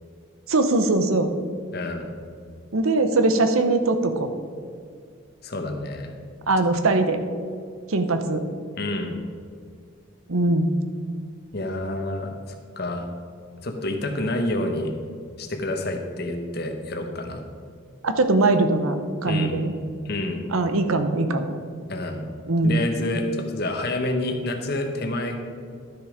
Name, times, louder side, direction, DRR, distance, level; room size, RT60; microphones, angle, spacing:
voice 1, 0.5-1.3 2.7-4.3 6.5-7.2 7.9-8.4 10.3-10.7 18.0-19.0 19.2-19.7 20.5-21.5 22.5-22.8, right 2 dB, 90° right, 8 dB, 0.9 m, -21 dB
voice 2, 1.7-2.1 5.4-6.1 8.8-9.2 11.5-13.1 13.6-14.9 15.4-17.4 19.2-19.6 20.0-20.4 21.9-22.2 22.6-25.4, left 1 dB, 50° left, 4 dB, 1.1 m, -28 dB
12.0 x 6.7 x 5.0 m, 2.2 s
head